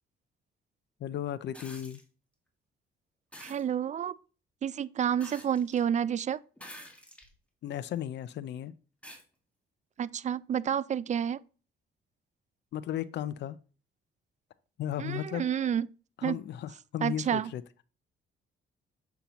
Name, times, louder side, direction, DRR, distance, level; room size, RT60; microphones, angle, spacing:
voice 1, 1.0-2.0 7.6-8.7 12.7-13.6 14.8-15.4 16.2-17.6, left 11 dB, 60° left, 0.5 m, -35 dB
sound 1, 1.5-2.0 3.3-3.6 5.2-5.8 6.6-7.3 8.0-8.1 9.0-9.2 10.7-10.8, equal, 5° left, 1.8 m, -48 dB
voice 2, 3.4-4.1 4.6-6.4 10.0-11.4 15.0-15.9 16.2-16.4 17.0-17.5, right 9 dB, 35° right, 0.4 m, -29 dB
6.9 x 5.7 x 3.0 m
cardioid pair, 90°, 20 cm